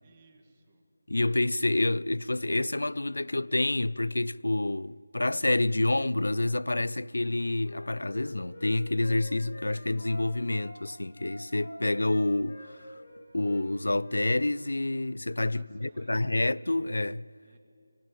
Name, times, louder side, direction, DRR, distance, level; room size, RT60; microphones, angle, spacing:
voice 1, 0.0-0.8 15.5-16.2 17.4-17.6, right 4 dB, 20° right, 1.8 m, -60 dB
voice 2, 1.1-12.9 13.3-17.3, left 2 dB, 85° left, 0.4 m, -28 dB
Wind instrument woodwind instrument, 7.2-10.7 11.1-13.2 13.4-13.6 13.9-14.2 14.5-14.7, left 1 dB, 50° left, 6.1 m, -47 dB
20.5 x 16.5 x 9.1 m
figure-of-eight pair, 170°, 0 cm